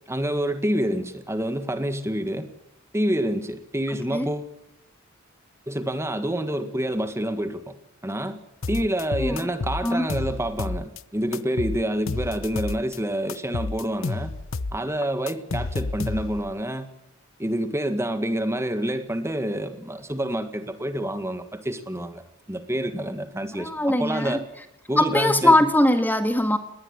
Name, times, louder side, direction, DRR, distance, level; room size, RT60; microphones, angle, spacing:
voice 1, 0.1-2.5 2.9-4.5 5.7-7.7 8.0-8.4 8.7-14.3 14.7-16.9 17.4-24.4 24.9-25.6, right 1 dB, 15° right, 9 dB, 1.8 m, -27 dB
voice 2, 3.9-4.3 9.2-9.4 9.8-10.0 23.6-24.4 25.0-26.6, left 1 dB, 10° left, 8 dB, 1.8 m, -21 dB
sound 1, 8.6-11.0 11.3-13.0 13.3-16.5, left 3 dB, 65° left, 0.8 m, -30 dB
20.5 x 19.5 x 9.8 m, 0.80 s
head